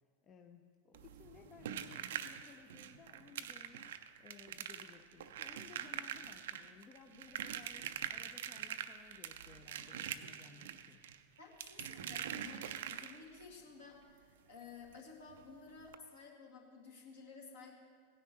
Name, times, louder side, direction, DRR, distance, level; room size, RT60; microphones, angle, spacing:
voice 1, 0.2-11.2, left 6 dB, 25° left, 4 dB, 0.6 m, -59 dB
sound 1, 0.9-13.4 14.9-15.0 15.3-15.4 15.8-15.9, right 10 dB, 55° right, 0.4 m, -44 dB
voice 2, 11.4-17.8, left 5 dB, 60° left, -1 dB, 2.2 m, -54 dB
17.0 x 9.8 x 3.1 m, 2.1 s
figure-of-eight pair, 90°, 0 cm